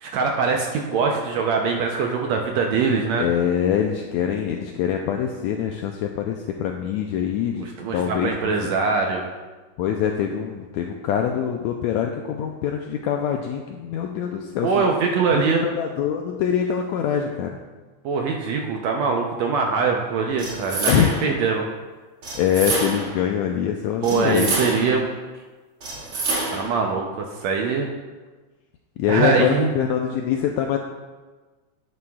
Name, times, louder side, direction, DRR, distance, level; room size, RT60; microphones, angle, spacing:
voice 1, 0.0-3.3 7.6-9.3 14.6-15.6 18.1-21.7 24.0-25.0 25.3-25.4 26.5-27.9 29.1-29.7, right 5 dB, 75° right, 1 dB, 1.7 m, -23 dB
voice 2, 3.2-8.5 9.8-14.8 15.3-17.5 20.9-21.1 22.4-24.6 29.0-30.8, left 9 dB, 90° left, 3 dB, 1.6 m, -24 dB
sound 1, 20.4-21.4 22.2-23.2 24.0-25.0 25.8-26.8, right 3 dB, 45° right, 2.5 m, -27 dB
11.5 x 9.5 x 2.3 m, 1.3 s
omnidirectional pair, 3.7 m